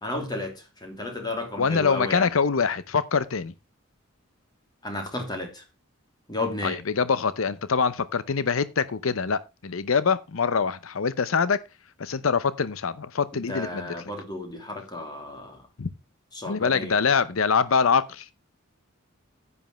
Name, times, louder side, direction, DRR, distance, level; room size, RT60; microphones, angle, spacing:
voice 1, 0.0-2.3 4.8-5.6 6.3-6.8 13.5-15.6 16.3-16.9, left 2 dB, 20° left, 2.9 m, -33 dB
voice 2, 1.6-3.5 6.6-11.6 12.0-13.9 15.8-15.9 16.5-18.3, left 5 dB, 75° left, 0.7 m, -24 dB
10.5 x 9.6 x 3.1 m
head